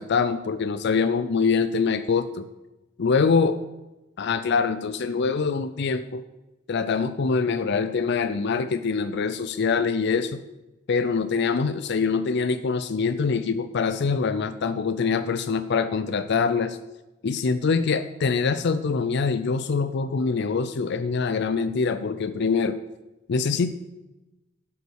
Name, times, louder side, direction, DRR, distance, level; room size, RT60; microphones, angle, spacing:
voice 1, 0.0-2.4 3.0-3.6 4.2-6.2 6.7-10.4 10.9-16.8 17.2-22.8 23.3-23.7, left 5 dB, 60° left, 11 dB, 0.5 m, -24 dB
12.0 x 5.4 x 6.3 m, 1.0 s
head